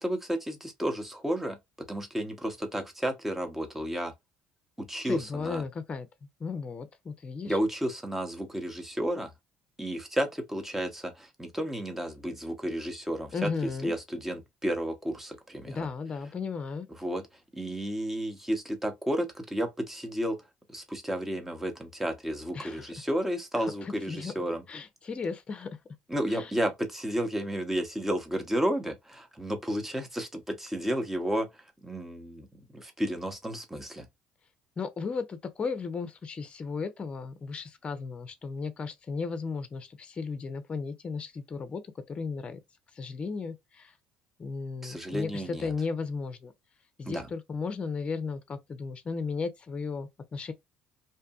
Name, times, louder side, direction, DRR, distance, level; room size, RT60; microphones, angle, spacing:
voice 1, 0.0-1.6 1.9-4.1 4.8-5.6 7.5-9.3 9.8-15.9 17.0-17.2 17.5-20.4 20.7-24.6 26.1-32.5 32.7-34.1 44.8-45.7 47.0-47.3, equal, 10° right, 0.9 m, -32 dB
voice 2, 5.0-6.1 6.4-7.6 13.3-13.9 15.7-16.9 22.5-22.9 23.5-24.3 24.7-25.7 26.3-26.5 34.8-41.8 42.1-42.6 42.9-43.9 44.4-46.5 47.0-50.5, left 4 dB, 35° left, 0.6 m, -35 dB
2.7 x 2.5 x 2.3 m
supercardioid pair, 80°, 3 cm